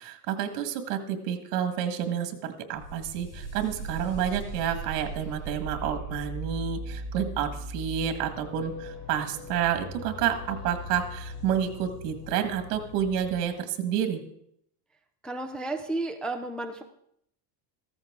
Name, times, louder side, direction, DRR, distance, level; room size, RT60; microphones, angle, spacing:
voice 1, 0.0-14.2, right 9 dB, 85° right, 8 dB, 1.7 m, -29 dB
sound 1, 2.7-13.4, right 1 dB, 20° left, 6.1 m, -39 dB
voice 2, 15.2-16.8, right 2 dB, ahead, 4 dB, 0.4 m, -32 dB
14.5 x 14.0 x 3.7 m, 0.72 s
cardioid pair, 160°, 46 cm